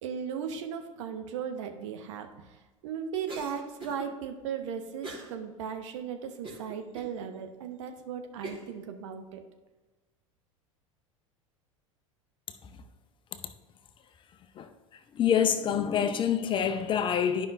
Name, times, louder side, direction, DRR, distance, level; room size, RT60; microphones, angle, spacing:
voice 1, 0.0-9.4, right 7 dB, 60° right, 0.9 m, -37 dB
Cough, 3.3-4.1 5.0-5.4 5.8-5.9 6.4-7.1 7.7-7.8 8.4-8.8, right 2 dB, 30° right, 1.9 m, -42 dB
voice 2, 15.1-17.5, left 8 dB, 30° left, 0.6 m, -26 dB
11.0 x 5.5 x 2.6 m
figure-of-eight pair, 75°, 17 cm